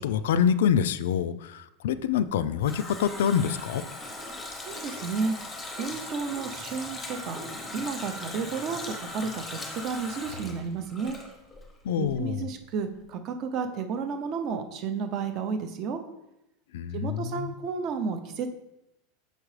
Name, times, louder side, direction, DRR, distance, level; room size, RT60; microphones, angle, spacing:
voice 1, 0.0-3.8 11.8-12.5 16.7-17.5, left 8 dB, 85° left, 14 dB, 0.3 m, -26 dB
Water tap faucet, 2.3-11.8 12.0-12.2, left 2 dB, 10° left, 0.7 m, -39 dB
voice 2, 4.5-5.3 5.8-7.4 7.7-11.2 12.0-16.0 16.9-18.5, right 5 dB, 30° right, 7 dB, 0.5 m, -32 dB
6.4 x 5.0 x 3.2 m, 0.90 s
supercardioid pair, 180°, 0 cm